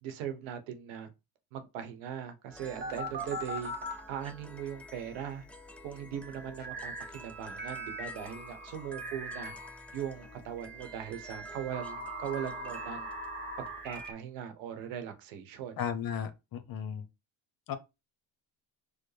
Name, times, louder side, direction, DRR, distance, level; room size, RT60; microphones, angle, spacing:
voice 1, 0.0-1.1 1.5-3.7 4.1-5.4 5.8-9.5 9.9-13.1 13.8-15.8, right 9 dB, 85° right, 0.9 m, -39 dB
sound 1, 2.5-14.1, right 1 dB, 5° left, 0.4 m, -49 dB
sound 2, 2.8-4.0 6.6-7.1 7.6-9.7 10.6-14.1, right 1 dB, 20° right, 1.1 m, -40 dB
voice 2, 15.8-17.0 17.7-17.8, left 8 dB, 50° left, 0.8 m, -35 dB
4.7 x 2.1 x 3.2 m
supercardioid pair, 90°, 46 cm